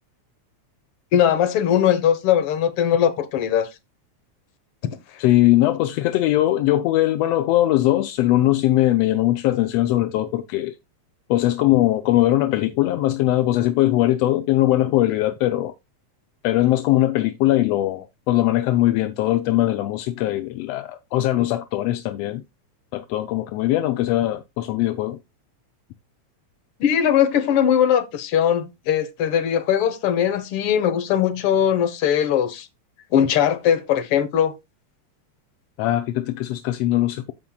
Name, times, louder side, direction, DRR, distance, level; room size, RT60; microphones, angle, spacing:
voice 1, 1.1-3.7 26.8-32.7 33.1-34.5, left 9 dB, 60° left, 1.8 m, -20 dB
voice 2, 5.2-10.7 11.3-15.7 16.4-22.4 22.9-25.2 35.8-37.3, left 15 dB, 80° left, 1.5 m, -20 dB
14.5 x 5.3 x 2.3 m
omnidirectional pair, 3.4 m